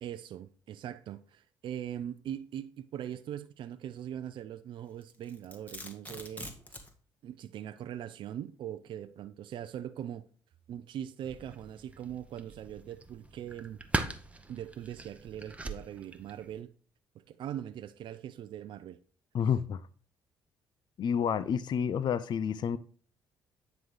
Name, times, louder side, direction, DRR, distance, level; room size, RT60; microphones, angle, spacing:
voice 1, 0.0-6.8 7.2-10.2 10.7-13.8 14.5-16.7 17.2-19.0, right 10 dB, 60° right, 0.5 m, -41 dB
Domestic sounds home sounds, 5.0-6.9, left 1 dB, 15° left, 1.6 m, -44 dB
sound 1, 11.2-16.6, right 2 dB, 15° right, 0.9 m, -40 dB
voice 2, 19.3-19.9 21.0-22.8, left 7 dB, 55° left, 0.5 m, -29 dB
9.3 x 4.0 x 4.8 m
supercardioid pair, 65°, 9 cm